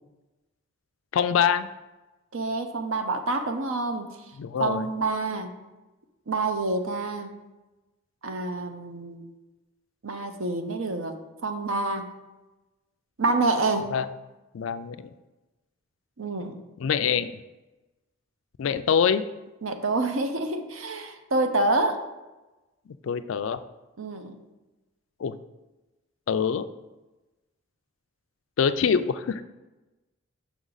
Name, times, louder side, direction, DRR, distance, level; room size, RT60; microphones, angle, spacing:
voice 1, 1.1-1.7 4.4-4.9 13.9-14.1 14.5-15.0 16.8-17.3 18.6-19.3 23.0-23.6 25.2-25.4 26.3-26.6 28.6-29.4, left 7 dB, 65° left, 12 dB, 0.3 m, -24 dB
voice 2, 2.3-4.1 4.6-5.5 6.3-7.4 8.2-9.3 10.0-11.2 11.4-12.1 13.2-14.0 16.2-16.6 19.6-22.0 24.0-24.4, right 2 dB, 70° right, 7 dB, 0.7 m, -27 dB
6.1 x 5.8 x 4.0 m, 1.1 s
head